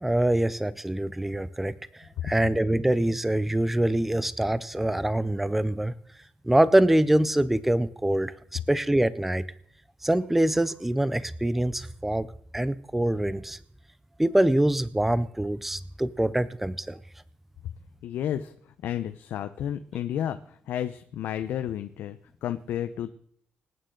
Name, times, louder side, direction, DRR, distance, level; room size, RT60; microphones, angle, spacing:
voice 1, 0.0-5.9 6.5-8.3 8.7-9.4 10.0-12.3 12.5-13.6 14.2-17.0, right 1 dB, 5° right, 16 dB, 0.5 m, -24 dB
voice 2, 18.0-18.5 18.8-23.1, left 10 dB, 80° left, 10 dB, 0.7 m, -32 dB
25.5 x 8.9 x 3.8 m, 0.67 s
cardioid pair, 150°, 3 cm